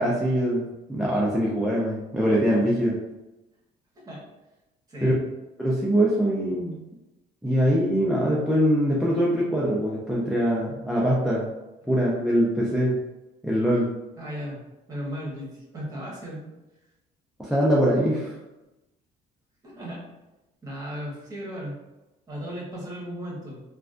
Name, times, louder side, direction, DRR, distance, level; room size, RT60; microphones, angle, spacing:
voice 1, 0.0-3.0 5.0-5.1 5.6-6.8 7.4-11.5 11.9-13.0 13.4-13.9 17.4-18.3, equal, ahead, -5 dB, 0.5 m, -23 dB
voice 2, 14.2-14.6 14.9-16.5 19.6-20.0 20.6-21.8 22.3-23.6, equal, 20° right, -5 dB, 1.4 m, -36 dB
3.2 x 2.5 x 2.5 m, 1.0 s
cardioid pair, 110°, 17 cm